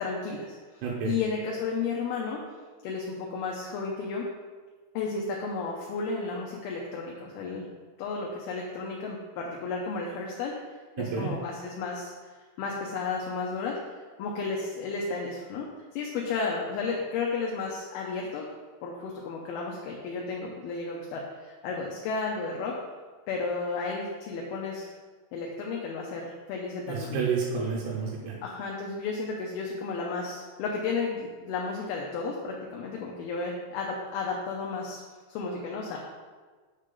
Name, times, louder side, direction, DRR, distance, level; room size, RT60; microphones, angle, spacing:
voice 1, 0.0-2.4 2.8-4.3 4.9-7.7 8.0-10.6 11.0-12.1 12.6-13.8 14.2-18.5 18.8-22.8 23.3-24.9 25.3-27.2 28.4-35.0 35.3-36.0, left 4 dB, 75° left, -1 dB, 2.5 m, -33 dB
voice 2, 0.8-1.2 11.0-11.3 26.9-28.4, right 5 dB, 85° right, -3 dB, 3.0 m, -30 dB
6.5 x 6.5 x 3.8 m, 1.4 s
omnidirectional pair, 4.8 m